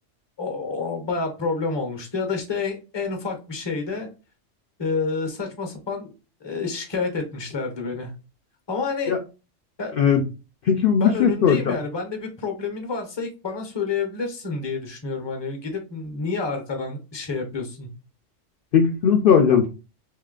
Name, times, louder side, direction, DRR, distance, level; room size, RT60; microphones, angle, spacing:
voice 1, 0.4-4.1 4.8-6.1 6.4-8.1 8.7-9.2 9.8-9.9 11.0-17.9, left 4 dB, 25° left, 4 dB, 0.7 m, -29 dB
voice 2, 10.6-11.8 18.7-19.7, left 7 dB, 60° left, 4 dB, 0.6 m, -18 dB
3.2 x 2.8 x 3.7 m, 0.32 s
omnidirectional pair, 1.3 m